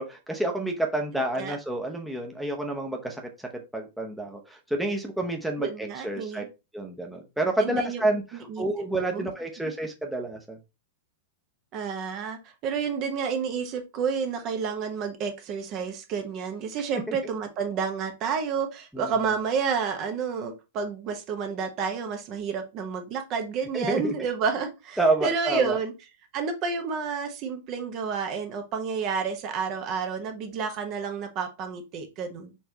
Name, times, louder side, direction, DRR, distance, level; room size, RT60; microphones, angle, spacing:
voice 1, 0.0-6.4 6.7-10.6 17.1-17.2 18.9-19.1 23.7-24.1 25.0-25.8, right 2 dB, 5° right, 0.8 m, -29 dB
voice 2, 5.6-6.5 7.6-8.0 8.5-8.7 9.1-9.3 9.6-9.7 11.7-25.9 26.3-32.6, right 6 dB, 40° right, 0.9 m, -30 dB
4.4 x 3.2 x 2.8 m
hypercardioid pair, 100°, 0 cm